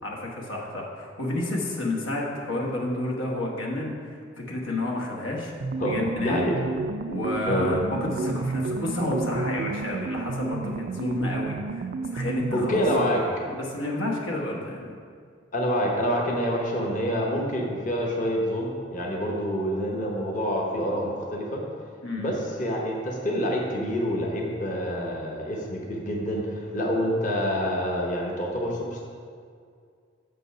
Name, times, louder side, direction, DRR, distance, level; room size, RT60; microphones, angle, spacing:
voice 1, 0.0-5.5 5.8-6.4 7.1-12.8 13.5-15.0 19.2-19.3 22.0-22.4, left 2 dB, 90° left, -1 dB, 1.3 m, -30 dB
sound 1, 5.6-13.3, right 3 dB, 50° right, 0.3 m, -31 dB
voice 2, 5.8-6.5 7.5-7.7 12.5-13.2 15.5-21.6 22.2-29.1, equal, 40° left, -1 dB, 0.9 m, -27 dB
6.9 x 5.4 x 5.6 m, 2.2 s
head